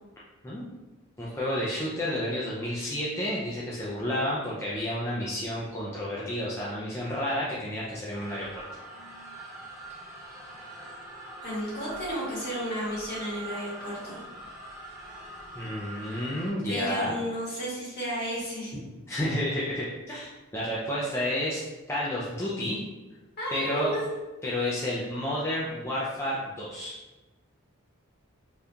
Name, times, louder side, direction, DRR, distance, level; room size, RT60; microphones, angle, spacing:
voice 1, 1.2-8.5 15.6-17.2 19.1-21.6 21.9-22.8 23.5-24.0 24.4-27.0, left 1 dB, 15° left, -6 dB, 0.4 m, -30 dB
sound 1, 8.1-16.5, right 1 dB, 15° right, 1.0 m, -43 dB
voice 2, 11.4-14.2 16.6-18.8 23.4-24.1, equal, 50° left, -7 dB, 1.4 m, -33 dB
3.5 x 2.3 x 2.7 m, 1.1 s
head